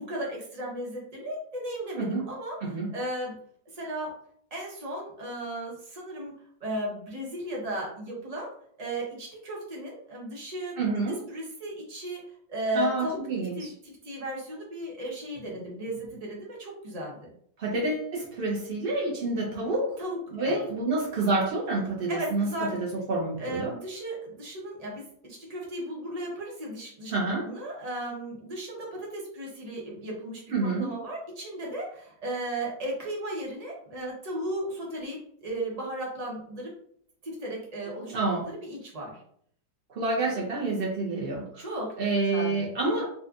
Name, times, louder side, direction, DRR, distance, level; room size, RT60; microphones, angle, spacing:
voice 1, 0.0-3.3 3.7-4.1 4.5-6.3 6.6-8.5 8.8-10.7 11.3-12.2 12.5-13.2 13.5-17.3 20.0-20.6 22.1-22.7 23.4-27.1 27.4-30.4 30.8-36.7 37.2-39.2 41.6-41.9 42.2-42.7, right 1 dB, 35° right, -3 dB, 0.6 m, -35 dB
voice 2, 10.8-11.2 12.7-13.7 17.6-20.0 20.3-23.7 27.1-27.5 30.5-30.9 38.1-38.5 39.9-41.7 42.0-43.1, right 3 dB, 85° right, -4 dB, 0.5 m, -28 dB
4.1 x 2.2 x 2.4 m, 0.64 s
omnidirectional pair, 1.9 m